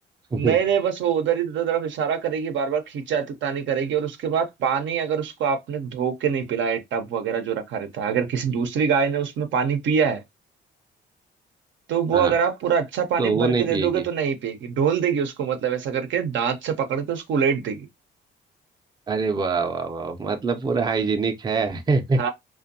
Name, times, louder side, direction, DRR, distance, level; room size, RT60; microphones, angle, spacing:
voice 1, 0.4-10.2 11.9-17.8 22.2-22.3, right 7 dB, 70° right, 0.6 m, -24 dB
voice 2, 13.2-14.0 19.1-22.3, right 4 dB, 20° right, 0.4 m, -24 dB
2.5 x 2.2 x 2.5 m
cardioid pair, 90°, 20 cm